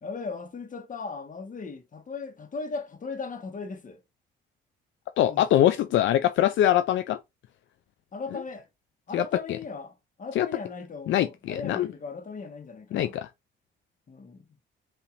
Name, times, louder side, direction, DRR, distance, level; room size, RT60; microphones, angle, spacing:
voice 1, 0.0-4.0 5.2-5.7 8.1-8.7 9.1-13.1 14.1-14.4, left 4 dB, 40° left, 1.4 m, -37 dB
voice 2, 5.2-7.2 9.1-9.2 10.4-10.5 11.1-11.9 12.9-13.3, left 12 dB, 70° left, 0.4 m, -23 dB
5.7 x 2.9 x 2.5 m
cardioid pair, 90°, 20 cm